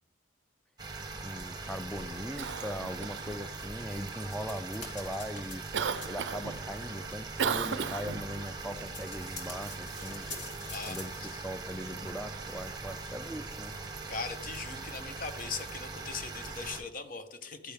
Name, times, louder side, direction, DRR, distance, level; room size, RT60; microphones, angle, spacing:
sound 1, 0.8-16.8, right 3 dB, 20° right, 1.2 m, -41 dB
voice 1, 1.2-5.6 6.1-10.3 10.9-13.7, equal, ahead, 0.3 m, -40 dB
Cough, 1.9-16.4, right 6 dB, 65° right, 0.4 m, -41 dB
sound 2, 4.3-5.5 5.8-6.1 6.7-6.8 7.1-7.2 7.4-7.6 8.1-11.0, left 3 dB, 60° left, 2.9 m, -44 dB
voice 2, 10.7-11.4 14.1-17.7, left 4 dB, 45° left, 1.0 m, -40 dB
12.0 x 10.0 x 3.5 m
head